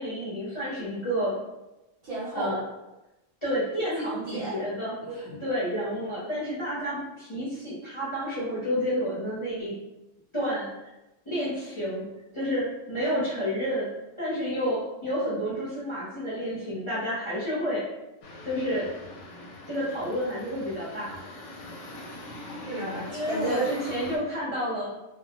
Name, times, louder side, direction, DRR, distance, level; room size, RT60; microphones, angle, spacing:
voice 1, 0.0-1.4 2.3-2.6 3.4-4.9 5.4-9.7 10.3-10.7 11.3-12.0 12.3-13.9 14.2-17.8 18.4-18.9 19.7-21.1 23.1-24.9, equal, 30° left, -10 dB, 0.6 m, -30 dB
voice 2, 2.0-2.6 4.0-4.6 5.0-5.4 22.6-23.7, right 2 dB, 50° right, -7 dB, 0.9 m, -32 dB
sound 1, 18.2-24.2, left 1 dB, 70° left, 0.8 m, -42 dB
2.4 x 2.0 x 2.8 m, 0.98 s
omnidirectional pair, 1.4 m